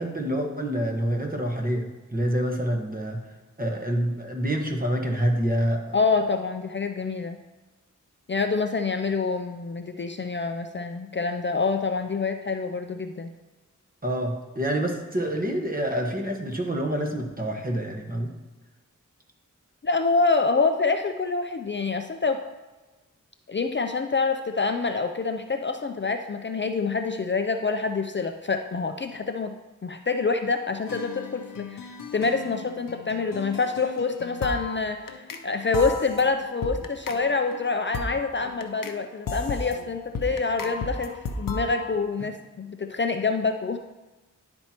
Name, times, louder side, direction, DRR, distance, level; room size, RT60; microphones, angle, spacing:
voice 1, 0.0-3.2 3.6-5.9 14.0-18.3, right 1 dB, 25° right, 2 dB, 1.4 m, -27 dB
voice 2, 5.9-7.4 8.3-13.3 19.8-22.4 23.5-29.5 29.8-31.8 32.1-43.8, left 4 dB, 35° left, 6 dB, 0.5 m, -26 dB
sound 1, 30.9-35.5 35.7-39.0 39.3-42.0, left 3 dB, 85° left, 0.7 m, -35 dB
11.5 x 4.4 x 2.9 m, 1.2 s
cardioid pair, 45°, 32 cm